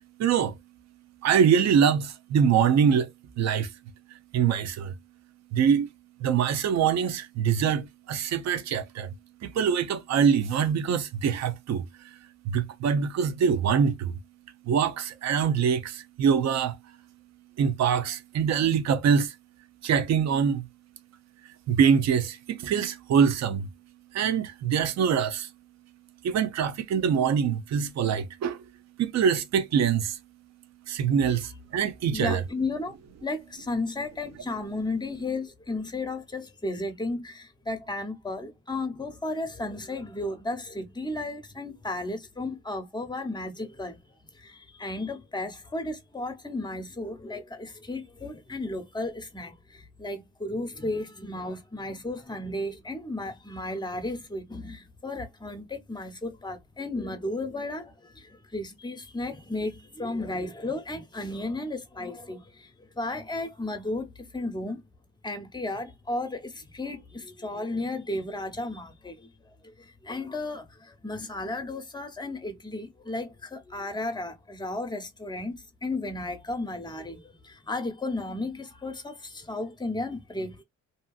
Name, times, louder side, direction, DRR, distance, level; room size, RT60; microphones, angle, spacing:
voice 1, 0.2-0.5 1.2-3.1 3.4-3.7 4.3-4.9 5.5-5.9 6.2-9.1 9.4-11.9 12.4-14.1 14.7-16.8 17.6-19.3 19.8-20.7 21.7-23.7 24.1-25.5 26.2-28.6 29.0-30.2 30.9-32.4, right 7 dB, 60° right, 0.6 m, -24 dB
voice 2, 32.1-64.8 65.2-80.6, left 2 dB, 15° left, 0.9 m, -34 dB
2.7 x 2.6 x 2.4 m
cardioid pair, 90°, 30 cm